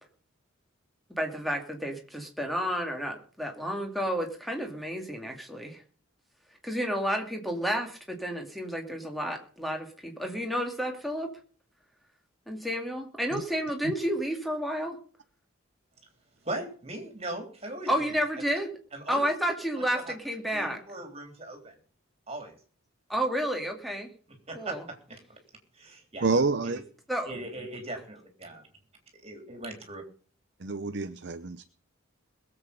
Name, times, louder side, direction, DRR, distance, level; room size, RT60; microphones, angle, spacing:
voice 1, 1.2-5.8 6.6-11.3 12.5-15.0 17.9-18.8 19.1-20.8 23.1-24.1 24.5-24.8 27.1-27.3, equal, ahead, 3 dB, 2.4 m, -31 dB
voice 2, 16.4-17.9 18.9-19.3 19.8-20.1 20.5-21.7 22.3-22.6 24.5-25.2 25.8-26.3 26.6-26.8 27.3-28.6 29.2-30.0, right 2 dB, 30° right, 4 dB, 3.6 m, -39 dB
voice 3, 26.2-26.8 30.6-31.6, right 3 dB, 55° right, 10 dB, 0.7 m, -28 dB
21.0 x 8.0 x 5.3 m, 0.42 s
head